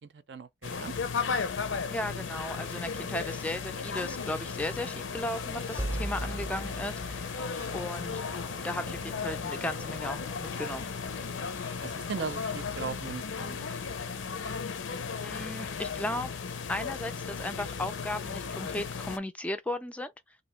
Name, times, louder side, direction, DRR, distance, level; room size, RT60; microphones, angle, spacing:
voice 1, 0.0-0.9 11.8-13.7, right 5 dB, 65° right, 0.5 m, -38 dB
sound 1, 0.6-19.2, left 5 dB, 85° left, 0.6 m, -35 dB
sound 2, 1.1-13.9, right 1 dB, 15° right, 0.7 m, -44 dB
voice 2, 1.9-7.4 7.7-8.2 8.6-10.9 15.2-16.3 16.7-20.4, left 1 dB, 5° left, 0.3 m, -36 dB
2.8 x 2.6 x 4.3 m
head